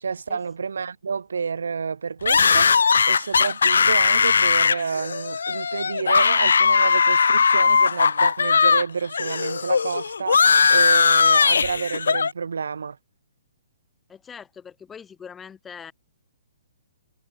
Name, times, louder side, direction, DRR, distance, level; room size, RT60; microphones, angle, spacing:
voice 1, 0.0-13.0, right 5 dB, 85° right, 1.8 m, -29 dB
sound 1, 2.3-8.8 9.1-12.3, left 5 dB, 85° left, 1.5 m, -19 dB
voice 2, 14.1-15.9, left 7 dB, 10° left, 5.9 m, -42 dB
hypercardioid pair, 155°, 0 cm